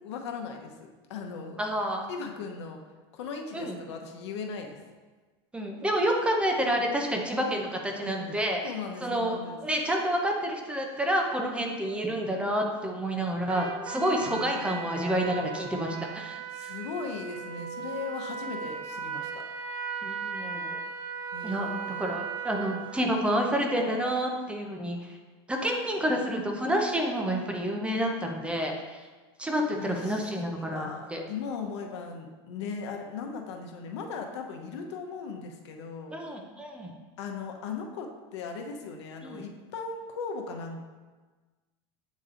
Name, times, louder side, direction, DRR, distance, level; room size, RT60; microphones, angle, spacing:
voice 1, 0.0-1.6 2.1-2.8 3.1-4.8 8.6-9.6 14.2-15.0 16.5-19.3 21.3-22.2 29.7-36.1 37.2-40.8, left 5 dB, 85° left, 3 dB, 0.9 m, -38 dB
voice 2, 1.6-2.1 3.5-3.7 5.5-8.7 9.0-16.7 20.0-20.8 21.4-21.7 22.0-25.2 25.5-29.0 29.4-31.2 36.1-36.9 39.2-39.4, equal, 10° right, 1 dB, 0.6 m, -29 dB
Trumpet, 13.5-23.0, right 6 dB, 55° right, 0.7 m, -37 dB
8.3 x 3.1 x 3.8 m, 1.3 s
supercardioid pair, 145°, 14 cm